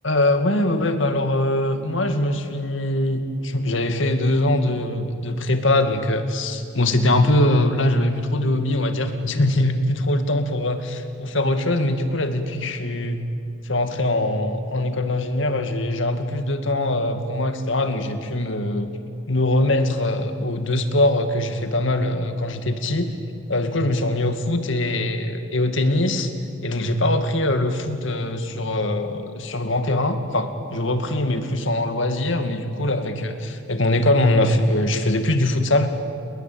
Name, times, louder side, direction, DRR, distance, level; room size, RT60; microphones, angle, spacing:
voice 1, 0.0-13.3 13.7-18.9 19.3-23.1 23.5-26.3 26.6-35.9, left 1 dB, 70° left, 7 dB, 2.2 m, -22 dB
29.5 x 21.0 x 8.8 m, 2.4 s
head